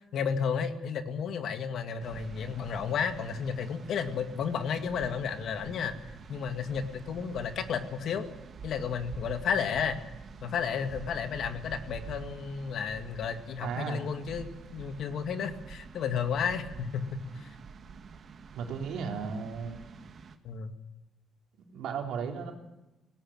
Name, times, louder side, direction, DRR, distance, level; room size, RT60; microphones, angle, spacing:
voice 1, 0.1-6.0 6.3-8.3 8.6-10.0 10.4-17.5 20.4-20.7, left 7 dB, 70° left, 7 dB, 2.0 m, -32 dB
sound 1, 2.0-20.4, right 5 dB, 50° right, 1.8 m, -47 dB
voice 2, 13.6-14.0 18.5-19.8 21.7-22.5, right 6 dB, 85° right, 2 dB, 3.6 m, -35 dB
18.5 x 18.0 x 8.9 m, 1.0 s
cardioid pair, 90°, 0 cm